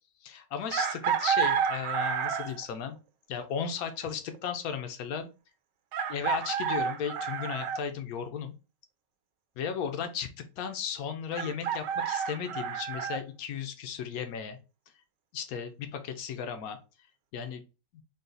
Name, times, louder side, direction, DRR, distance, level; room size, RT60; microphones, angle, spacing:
voice 1, 0.2-3.0 3.3-5.3 6.1-8.5 9.6-10.3 10.6-14.6 15.3-16.8 17.3-17.6 17.9-18.0, left 7 dB, 65° left, 7 dB, 1.0 m, -35 dB
Chicken rooster, 0.7-2.7 4.3-4.4 5.9-7.8 11.3-13.2, right 7 dB, 80° right, 1.2 m, -30 dB
3.9 x 2.4 x 3.8 m, 0.31 s
omnidirectional pair, 1.9 m